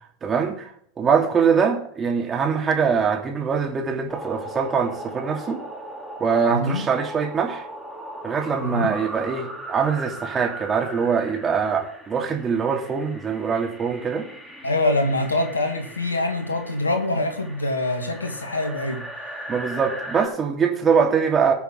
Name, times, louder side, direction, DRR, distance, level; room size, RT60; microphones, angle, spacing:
voice 1, 0.2-0.7 1.0-5.6 6.2-7.7 8.2-14.3 19.5-21.5, right 6 dB, 25° right, 3.1 m, -23 dB
sound 1, 4.1-20.3, right 1 dB, 5° left, 3.5 m, -38 dB
voice 2, 6.5-6.8 8.6-8.9 14.6-19.0, left 2 dB, 90° left, 2.2 m, -24 dB
19.0 x 6.9 x 4.0 m
figure-of-eight pair, 85°, 0 cm